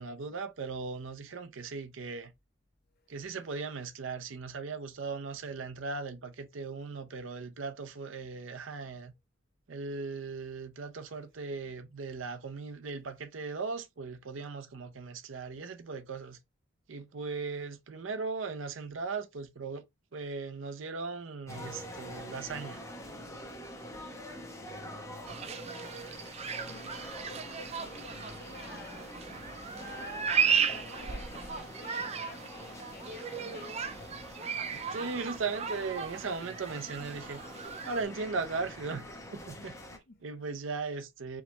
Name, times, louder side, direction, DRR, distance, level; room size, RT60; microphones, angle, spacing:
voice 1, 0.0-2.3 3.1-9.1 9.7-16.4 16.9-19.8 20.1-22.8 34.7-37.4 37.9-39.7 40.2-41.4, right 4 dB, 75° right, 0.6 m, -38 dB
sound 1, 21.5-40.0, left 1 dB, 15° left, 0.9 m, -45 dB
voice 2, 25.3-35.0 39.6-40.2, left 4 dB, 50° left, 0.7 m, -53 dB
sound 2, 25.3-38.0, right 6 dB, 35° right, 0.5 m, -35 dB
4.7 x 2.9 x 3.3 m
head